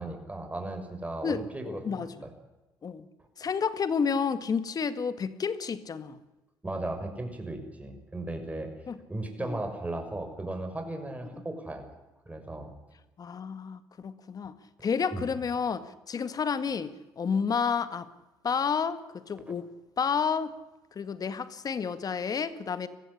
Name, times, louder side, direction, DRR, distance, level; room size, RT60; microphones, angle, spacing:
voice 1, 0.0-2.3 6.6-8.7 9.1-11.8 12.3-12.7 15.1-15.2, right 2 dB, 15° right, 5 dB, 6.2 m, -36 dB
voice 2, 1.2-2.3 2.8-3.1 3.4-6.2 8.9-9.0 9.4-9.6 11.3-11.4 13.2-14.5 14.8-18.1 18.4-19.7 20.0-20.5 20.9-22.9, left 6 dB, 45° left, 13 dB, 1.9 m, -30 dB
22.0 x 15.0 x 10.0 m, 1.1 s
supercardioid pair, 65°, 9 cm